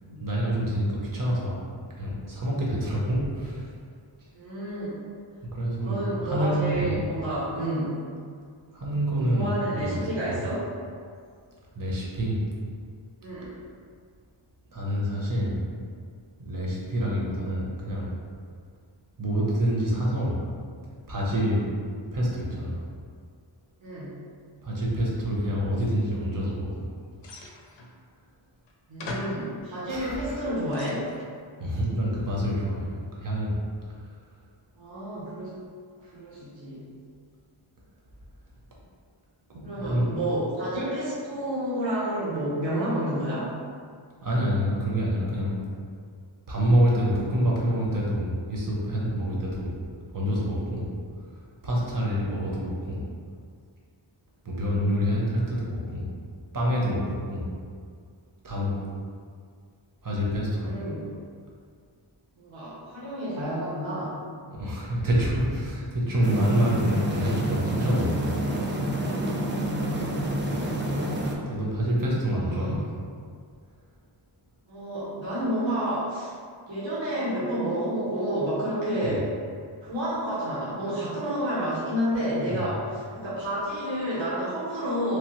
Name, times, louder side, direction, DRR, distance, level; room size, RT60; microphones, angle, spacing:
voice 1, 0.0-1.5 2.0-3.7 5.5-6.9 8.7-10.0 10.3-10.5 11.7-12.4 14.7-15.6 16.4-18.1 19.2-20.4 21.1-21.7 22.1-22.8 24.6-26.9 29.9-30.4 31.6-32.9 33.1-33.6 39.5-40.1 44.2-45.6 46.5-49.8 50.1-50.9 51.6-53.0 54.4-56.1 56.5-57.0 57.3-57.4 58.4-58.9 60.0-60.7 64.5-68.3 71.5-72.8 79.0-79.1 82.5-82.7, equal, 45° right, -5 dB, 0.8 m, -27 dB
voice 2, 4.3-4.9 5.8-8.0 9.3-10.6 13.2-13.5 23.8-24.1 28.9-31.0 34.8-35.5 36.1-36.9 39.6-43.5 60.6-61.1 62.4-64.1 72.3-72.9 74.7-76.3 76.7-79.3 79.8-85.2, right 1 dB, 70° right, -9 dB, 0.9 m, -30 dB
sound 1, 27.2-27.9 28.7-28.8 29.0-29.5 30.2-31.4, left 2 dB, 65° left, 0.5 m, -39 dB
sound 2, 66.2-71.3, right 1 dB, 25° right, 0.3 m, -28 dB
3.1 x 2.1 x 2.9 m, 2.1 s
wide cardioid pair, 65°, 47 cm